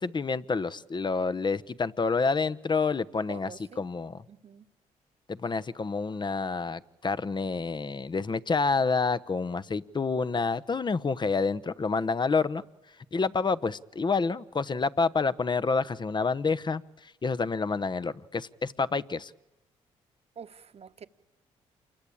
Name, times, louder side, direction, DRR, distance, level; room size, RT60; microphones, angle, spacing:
voice 1, 0.0-4.2 5.3-12.6 13.1-19.3, left 4 dB, 35° left, 1.0 m, -28 dB
voice 2, 3.3-3.8 4.3-4.7 20.4-21.1, right 7 dB, 50° right, 1.4 m, -46 dB
28.0 x 22.5 x 8.7 m
supercardioid pair, 60°, 13 cm